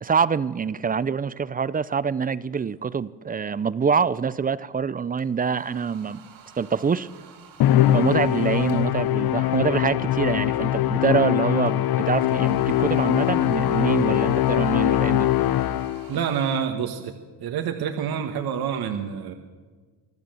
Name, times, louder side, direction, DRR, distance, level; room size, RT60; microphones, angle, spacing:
voice 1, 0.0-6.2 6.6-7.1 7.9-15.3, right 6 dB, 20° right, 18 dB, 0.5 m, -25 dB
sound 1, 2.6-2.8 5.2-9.2 11.7-16.6, right 6 dB, 75° right, 4.6 m, -51 dB
Musical instrument, 7.6-16.2, left 14 dB, 55° left, 0.8 m, -22 dB
voice 2, 16.1-17.1 17.4-19.3, right 7 dB, 55° right, 5 dB, 1.7 m, -27 dB
25.0 x 14.0 x 7.8 m, 1.5 s
supercardioid pair, 100°, 45 cm